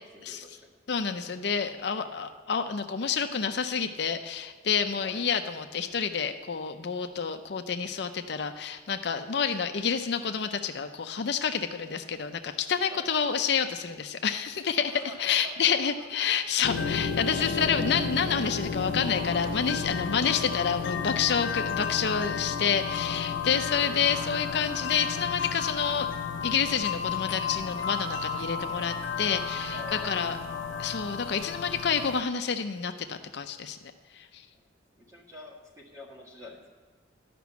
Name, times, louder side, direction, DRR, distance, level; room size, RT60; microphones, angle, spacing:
voice 1, 0.0-0.7 5.0-5.2 9.3-9.5 11.8-11.9 12.9-13.1 14.9-16.4 23.6-24.2 29.7-30.9 34.5-34.6 34.9-36.7, left 2 dB, 15° right, -3 dB, 1.9 m, -48 dB
voice 2, 0.9-26.1 26.4-30.4 30.8-33.8 34.1-34.4, left 6 dB, 60° left, 7 dB, 0.5 m, -29 dB
sound 1, 16.6-32.2, left 6 dB, 90° left, 0.9 m, -32 dB
12.0 x 6.0 x 8.2 m, 1.5 s
head